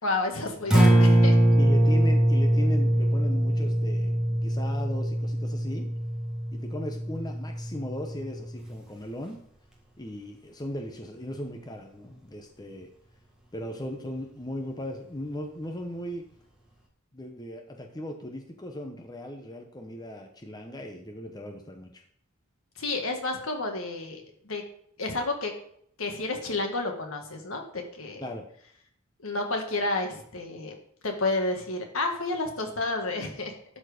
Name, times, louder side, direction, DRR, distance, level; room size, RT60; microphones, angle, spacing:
voice 1, 0.0-1.4 22.8-24.6 25.0-25.5 26.0-28.2 29.2-30.7 31.0-33.5, left 2 dB, 75° left, 3 dB, 1.7 m, -30 dB
Acoustic guitar, 0.6-8.8, right 1 dB, 5° right, 1.6 m, -23 dB
voice 2, 1.6-5.9 6.5-9.4 10.0-12.9 13.5-16.3 17.1-22.0 28.2-28.4, left 1 dB, 20° left, 3 dB, 0.8 m, -37 dB
12.0 x 4.4 x 5.0 m, 0.66 s
head